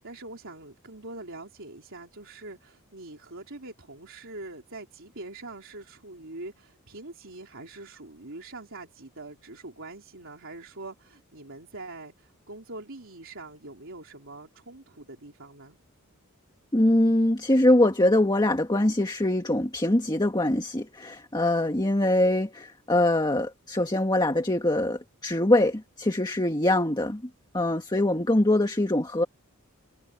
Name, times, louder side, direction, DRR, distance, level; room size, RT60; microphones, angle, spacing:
voice 1, 0.0-15.8, right 2 dB, 60° right, 3.8 m, -43 dB
voice 2, 16.7-27.2 27.5-29.2, left 1 dB, 20° left, 1.7 m, -23 dB
head